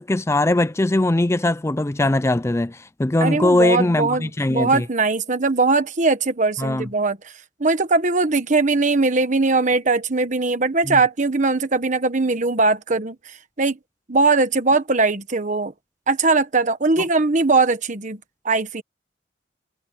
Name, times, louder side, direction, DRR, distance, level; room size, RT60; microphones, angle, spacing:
voice 1, 0.0-4.9 6.6-6.9 10.9-11.0, left 2 dB, 15° left, 0.4 m, -20 dB
voice 2, 3.2-7.3 7.6-13.8 14.1-15.7 16.1-18.2 18.4-18.8, right 3 dB, 45° right, 1.3 m, -20 dB
head